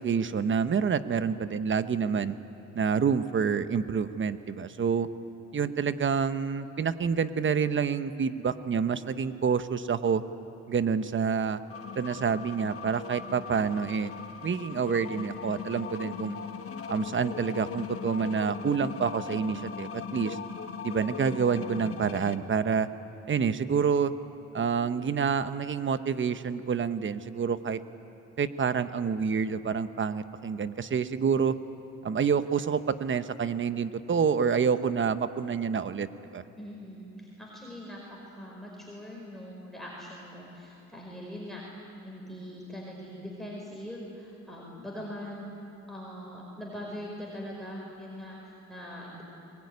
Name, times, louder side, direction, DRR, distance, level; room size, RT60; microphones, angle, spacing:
voice 1, 0.0-2.4 2.7-5.1 5.5-10.2 10.7-11.6 11.9-14.1 14.4-16.4 16.9-20.4 20.8-22.9 23.3-24.1 24.5-27.8 28.4-31.6 32.0-36.1 36.3-36.4, right 6 dB, 40° right, 11 dB, 1.1 m, -28 dB
sound 1, 11.7-22.4, left 7 dB, 50° left, 1.4 m, -39 dB
voice 2, 36.5-41.6 42.0-45.5 45.9-49.2, equal, ahead, -3 dB, 4.9 m, -42 dB
23.5 x 21.0 x 9.6 m, 2.9 s
cardioid pair, 90°, 30 cm